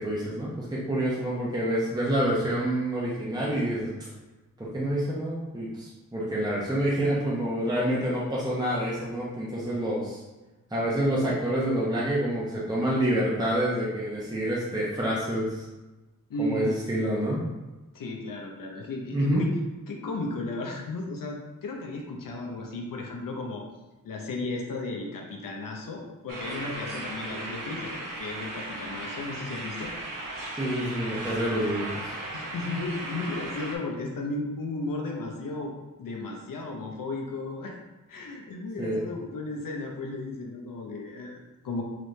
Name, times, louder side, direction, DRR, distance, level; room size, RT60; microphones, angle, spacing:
voice 1, 0.0-4.1 4.6-10.2 10.7-15.7 16.4-17.5 19.1-19.4 30.6-32.1 38.8-39.1, right 1 dB, 10° right, -6 dB, 0.8 m, -27 dB
voice 2, 16.3-16.7 17.9-19.6 19.9-23.6 24.0-27.9 28.2-29.9 31.5-31.7 32.3-35.7 36.0-37.8 38.1-41.8, left 2 dB, 75° left, 0 dB, 0.7 m, -34 dB
sound 1, 26.3-33.8, right 2 dB, 75° right, 0.9 m, -36 dB
3.9 x 3.1 x 3.2 m, 1.1 s
cardioid pair, 70°, 33 cm